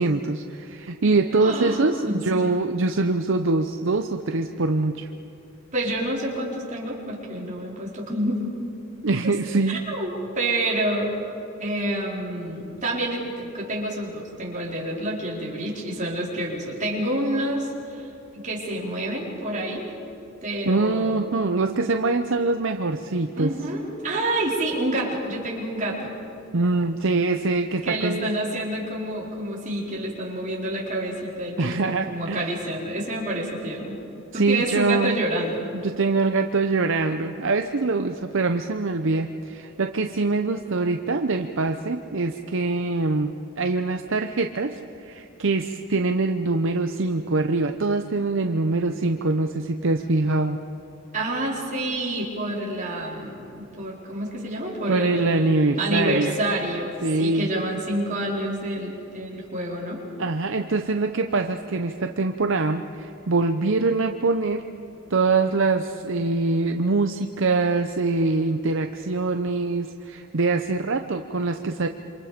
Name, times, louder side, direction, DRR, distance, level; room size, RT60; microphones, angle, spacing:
voice 1, 0.0-5.1 9.0-9.8 20.7-23.5 26.5-28.3 31.6-32.6 34.3-35.2 35.8-50.6 54.9-56.4 57.0-57.5 60.2-64.6 65.1-71.9, right 3 dB, 65° right, 6 dB, 0.8 m, -24 dB
voice 2, 1.4-2.4 5.7-8.4 9.7-11.1 11.6-18.1 18.4-19.9 20.4-21.6 23.3-26.1 27.8-34.0 34.3-35.7 51.1-55.4 55.8-56.9 57.2-60.0, right 1 dB, 35° right, -4 dB, 4.6 m, -28 dB
27.5 x 26.0 x 5.2 m, 2.9 s
head